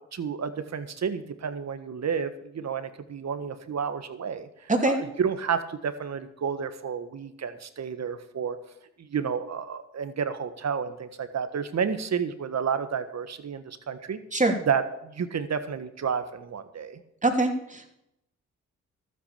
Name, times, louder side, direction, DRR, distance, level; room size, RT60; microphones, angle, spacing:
voice 1, 0.1-8.6 9.0-14.2 14.7-17.0, right 6 dB, 50° right, 10 dB, 1.6 m, -31 dB
voice 2, 17.2-17.9, right 2 dB, 20° right, 3 dB, 3.0 m, -23 dB
12.5 x 8.1 x 6.9 m, 0.80 s
supercardioid pair, 55°, 34 cm